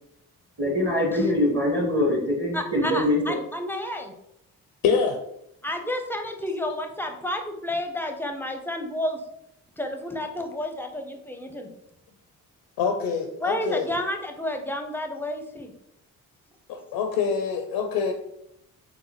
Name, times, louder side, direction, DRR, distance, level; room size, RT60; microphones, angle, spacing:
voice 1, 0.6-3.2, left 1 dB, 30° right, -2 dB, 1.2 m, -23 dB
voice 2, 2.5-4.1 5.6-9.2 9.8-11.7 13.4-15.7, left 1 dB, 5° left, 4 dB, 0.5 m, -30 dB
voice 3, 4.8-5.2 12.8-13.9 16.7-18.1, left 6 dB, 85° left, 5 dB, 0.5 m, -25 dB
3.9 x 2.2 x 2.9 m, 0.78 s
supercardioid pair, 55°, 38 cm